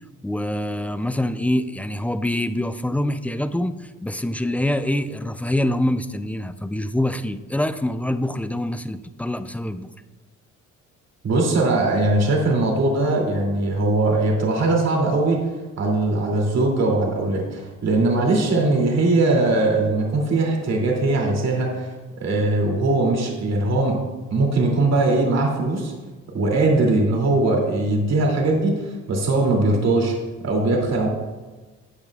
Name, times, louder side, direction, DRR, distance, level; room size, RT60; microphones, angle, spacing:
voice 1, 0.2-9.9, left 1 dB, 5° left, 11 dB, 0.4 m, -25 dB
voice 2, 11.2-15.4 15.8-24.0 24.3-25.9 26.3-30.1 30.4-31.1, right 2 dB, 60° right, -1 dB, 2.8 m, -20 dB
14.0 x 8.8 x 2.4 m, 1.3 s
cardioid pair, 90°, 30 cm